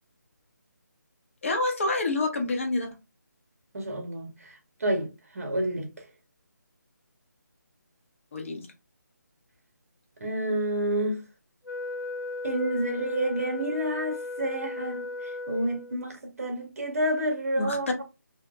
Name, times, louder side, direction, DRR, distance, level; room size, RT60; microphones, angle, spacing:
voice 1, 1.4-2.9 8.3-8.7 17.6-17.8, left 2 dB, 45° left, 0.7 m, -27 dB
voice 2, 3.7-5.9 10.2-11.2 12.4-18.0, right 1 dB, 50° right, 0.8 m, -29 dB
Wind instrument woodwind instrument, 11.6-16.0, left 2 dB, 85° left, 0.9 m, -36 dB
2.8 x 2.1 x 2.4 m
figure-of-eight pair, 155°, 10 cm